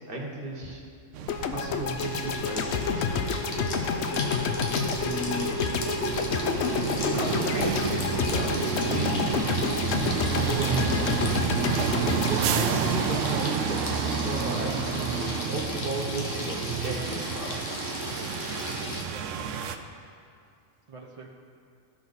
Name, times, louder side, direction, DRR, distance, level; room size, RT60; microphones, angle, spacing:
voice 1, 0.1-0.8 1.5-3.1 5.0-5.5 7.1-9.3 10.5-11.1 12.3-17.8, right 1 dB, 45° right, -1 dB, 1.4 m, -34 dB
sound 1, 1.1-19.8, right 7 dB, 75° right, 0.9 m, -31 dB
sound 2, 1.3-13.5, left 6 dB, 65° left, 0.8 m, -30 dB
Water tap faucet / Sink (filling or washing), 2.0-19.0, left 1 dB, 90° left, 1.5 m, -34 dB
voice 2, 8.9-9.2 17.1-17.4 19.1-19.9 20.9-21.3, right 3 dB, 30° right, -2 dB, 0.8 m, -45 dB
14.5 x 5.7 x 4.0 m, 2.3 s
omnidirectional pair, 1.3 m